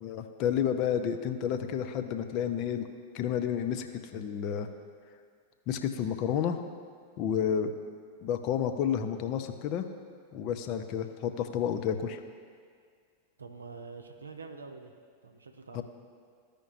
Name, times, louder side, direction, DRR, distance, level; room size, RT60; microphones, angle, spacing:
voice 1, 0.0-2.8 3.1-3.9 4.1-4.7 5.7-6.6 7.2-7.7 8.2-9.9 10.3-12.2 15.7-15.8, left 8 dB, 40° left, 7 dB, 0.6 m, -30 dB
voice 2, 13.4-14.9 15.2-15.8, right 4 dB, 75° right, 3 dB, 0.6 m, -45 dB
14.5 x 5.1 x 2.5 m, 2.1 s
figure-of-eight pair, 90°, 0 cm